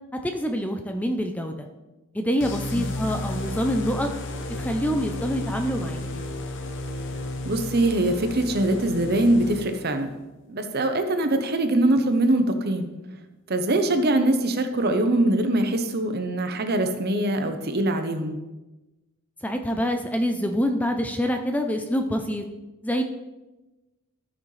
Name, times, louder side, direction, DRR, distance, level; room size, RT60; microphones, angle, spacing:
voice 1, 0.1-1.7 2.1-4.1 4.6-6.2 19.4-22.4 22.8-23.0, equal, 5° left, 5 dB, 0.5 m, -26 dB
sound 1, 2.4-10.0, left 1 dB, 55° left, 0.9 m, -33 dB
voice 2, 7.4-10.1 10.5-12.9 13.5-18.4, right 1 dB, 45° right, 7 dB, 0.8 m, -23 dB
14.0 x 6.1 x 3.3 m, 1.1 s
head